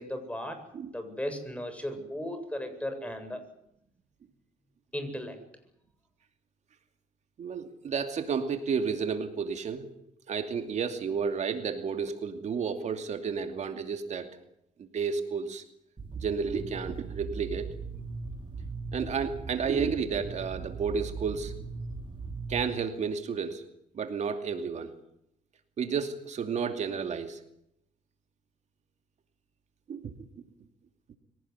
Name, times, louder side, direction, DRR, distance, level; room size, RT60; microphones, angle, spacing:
voice 1, 0.0-0.6 0.9-3.5 4.9-5.4, left 1 dB, 10° left, 8 dB, 7.9 m, -36 dB
voice 2, 7.4-9.9 10.3-14.3 14.9-15.6 16.2-17.7 18.9-21.5 22.5-23.6 23.9-24.9 25.8-27.4 29.9-30.1, right 6 dB, 60° right, 7 dB, 2.7 m, -31 dB
sound 1, 16.0-22.7, right 4 dB, 40° right, 5.0 m, -39 dB
24.0 x 18.5 x 9.8 m, 0.78 s
supercardioid pair, 65°, 13 cm